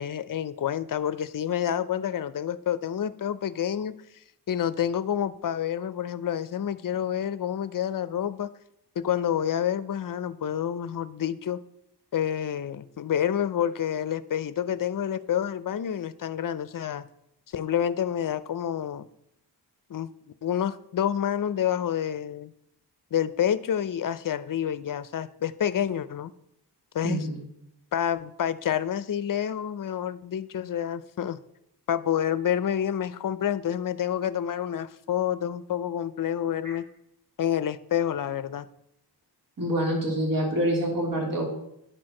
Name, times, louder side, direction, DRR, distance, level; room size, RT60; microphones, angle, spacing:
voice 1, 0.0-3.9 4.5-8.5 9.0-11.6 12.1-17.1 17.5-19.1 19.9-20.1 20.4-22.5 23.1-26.3 26.9-27.3 27.9-31.4 31.9-36.8 37.4-38.7, left 9 dB, 55° left, 15 dB, 0.5 m, -28 dB
voice 2, 27.0-27.4 36.6-36.7 39.6-41.5, right 1 dB, 55° right, -3 dB, 3.2 m, -26 dB
10.0 x 4.5 x 6.3 m, 0.79 s
wide cardioid pair, 120°, 41 cm